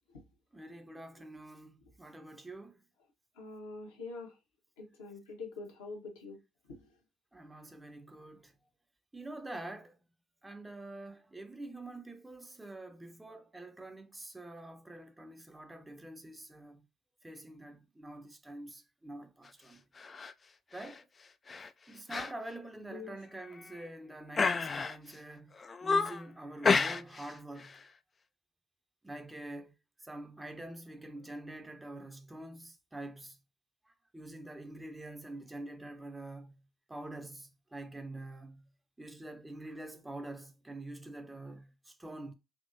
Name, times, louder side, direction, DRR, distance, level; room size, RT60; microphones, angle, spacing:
voice 1, 0.5-2.8 7.3-8.5 9.1-10.0 10.4-16.9 17.2-19.8 20.7-21.1 21.9-25.5 25.8-27.8 29.0-29.7 30.0-33.4 33.9-36.6 36.9-38.7 39.0-42.3, right 2 dB, 15° right, 0.6 m, -46 dB
voice 2, 3.4-4.4 4.8-6.4 6.7-6.9 22.9-23.1, left 3 dB, 75° left, 1.1 m, -45 dB
sound 1, 20.0-20.3 20.7-21.0 21.5-21.7 22.1-22.3 22.6-22.7 23.4-23.9 24.3-25.2 25.6-26.3 26.6-27.3 27.6-27.8, left 4 dB, 35° left, 0.3 m, -31 dB
3.6 x 2.8 x 2.6 m
figure-of-eight pair, 45°, 0 cm